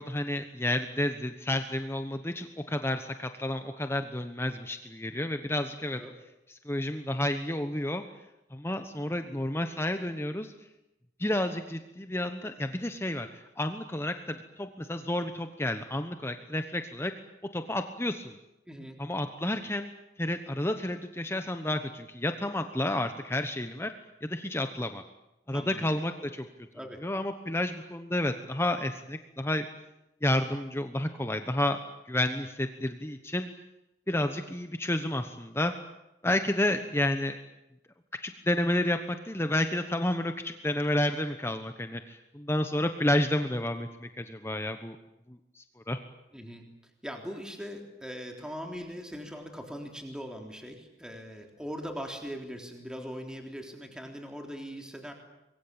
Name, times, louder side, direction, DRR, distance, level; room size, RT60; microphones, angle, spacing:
voice 1, 0.0-6.0 6.6-8.0 8.5-10.5 11.2-17.1 17.5-18.3 19.0-19.9 20.2-23.9 24.2-25.0 25.5-26.5 27.0-29.7 30.2-31.8 32.1-33.5 34.1-35.7 36.2-37.4 38.2-45.0 45.3-46.0, left 1 dB, 15° left, 8 dB, 1.1 m, -30 dB
voice 2, 18.7-19.0 25.5-25.9 26.7-27.1 46.3-46.7 47.0-55.1, equal, 5° right, 3 dB, 3.6 m, -40 dB
25.5 x 22.5 x 8.8 m, 0.91 s
head